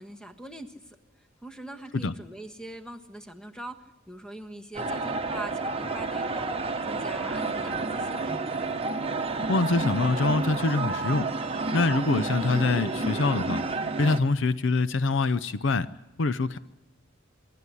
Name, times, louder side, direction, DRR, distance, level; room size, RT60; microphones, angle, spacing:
voice 1, 0.0-8.2, right 1 dB, 5° left, 7 dB, 1.3 m, -42 dB
sound 1, 4.7-14.2, right 3 dB, 30° right, 1.2 m, -30 dB
voice 2, 9.5-11.3 11.7-13.6 14.0-15.9 16.2-16.6, left 3 dB, 65° left, 15 dB, 0.6 m, -25 dB
25.5 x 11.5 x 9.8 m, 1.0 s
head